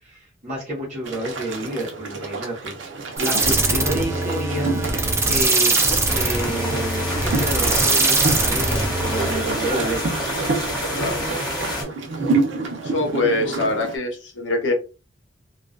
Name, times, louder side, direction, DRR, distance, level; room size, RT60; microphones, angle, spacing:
voice 1, 0.0-2.7 3.2-4.7 5.2-5.7 6.0-10.2 11.4-11.5, right 1 dB, 40° right, -5 dB, 1.0 m, -30 dB
sound 1, 1.1-14.0, right 3 dB, 80° right, 0.6 m, -28 dB
sound 2, 3.2-9.5, right 3 dB, 15° right, 0.4 m, -22 dB
sound 3, 6.1-11.8, left 1 dB, 25° left, 0.9 m, -28 dB
voice 2, 12.8-14.7, left 2 dB, 80° left, 3 dB, 0.8 m, -24 dB
2.4 x 2.2 x 2.4 m, 0.31 s
head